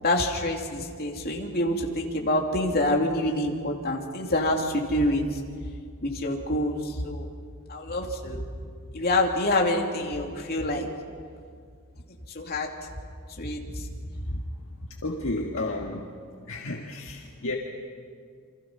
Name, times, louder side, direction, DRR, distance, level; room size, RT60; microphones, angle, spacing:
voice 1, 0.0-5.2 6.0-7.3 7.7-8.4 8.9-10.9 12.3-12.7 13.4-13.9 14.3-14.4, left 1 dB, 45° left, 1 dB, 2.8 m, -26 dB
voice 2, 15.0-16.1 16.5-17.6, left 2 dB, 60° left, 0 dB, 1.7 m, -32 dB
28.5 x 25.5 x 5.7 m, 2.1 s
head